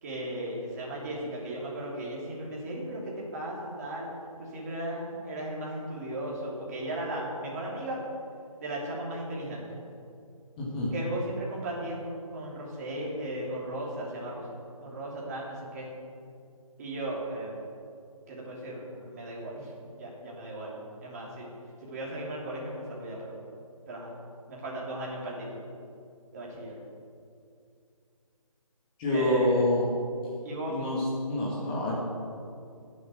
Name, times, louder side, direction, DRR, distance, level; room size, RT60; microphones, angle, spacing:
voice 1, 0.0-4.1 4.4-8.0 8.6-9.6 10.9-14.4 14.8-15.9 16.8-17.6 18.3-19.7 20.0-21.5 21.8-23.3 23.9-24.1 24.5-25.6 26.3-26.7 29.1-29.6 30.4-30.8, right 1 dB, 25° right, -4 dB, 3.1 m, -36 dB
voice 2, 10.6-10.9 29.0-29.9 30.7-32.0, left 1 dB, 15° left, -5 dB, 1.7 m, -27 dB
16.5 x 7.8 x 6.4 m, 2.5 s
figure-of-eight pair, 165°, 19 cm